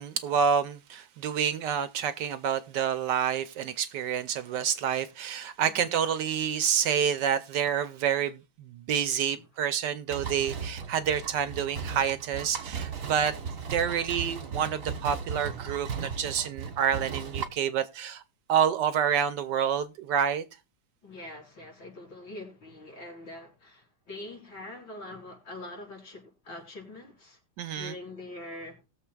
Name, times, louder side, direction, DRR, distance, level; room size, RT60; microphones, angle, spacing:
voice 1, 0.0-13.3 13.7-18.2 18.5-20.4 27.6-27.9, right 8 dB, 70° right, 1.2 m, -28 dB
voice 2, 5.6-5.9 9.3-9.4 21.0-27.4 27.8-28.8, left 2 dB, 75° left, 5.1 m, -44 dB
sound 1, 10.1-17.5, right 5 dB, 45° right, 1.5 m, -36 dB
20.5 x 7.3 x 2.3 m
omnidirectional pair, 2.2 m